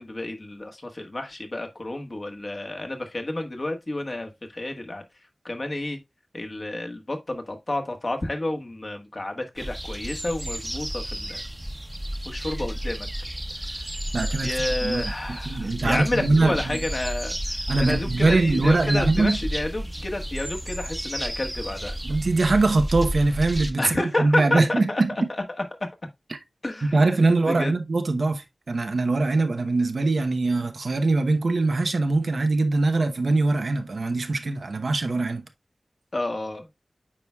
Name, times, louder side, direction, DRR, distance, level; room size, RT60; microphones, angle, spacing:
voice 1, 0.0-5.0 5.4-6.0 6.3-11.4 12.2-13.1 13.6-13.8 14.4-22.0 23.8-25.0 25.3-25.6 26.6-27.0 27.4-27.7 36.1-36.7, left 2 dB, 50° left, 1.4 m, -30 dB
sound 1, 9.6-23.7, right 1 dB, 20° right, 0.9 m, -32 dB
voice 2, 14.1-14.5 14.8-16.8 17.7-19.4 22.0-25.3 26.3-26.4 26.8-35.4, right 3 dB, 90° right, 0.9 m, -22 dB
8.9 x 4.7 x 2.3 m
wide cardioid pair, 60°, 0 cm